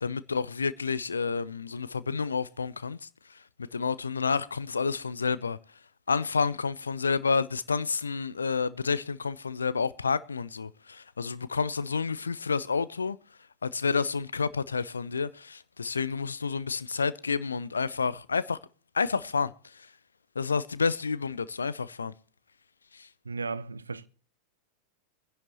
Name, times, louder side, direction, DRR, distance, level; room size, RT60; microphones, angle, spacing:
voice 1, 0.0-3.1 3.7-5.6 6.1-13.2 13.6-18.6 18.9-19.9 20.4-22.1 22.9-23.1, left 5 dB, 75° left, 0.5 m, -29 dB
voice 2, 23.2-24.1, right 4 dB, 75° right, 0.6 m, -35 dB
24.5 x 10.5 x 3.0 m
figure-of-eight pair, 90°, 0 cm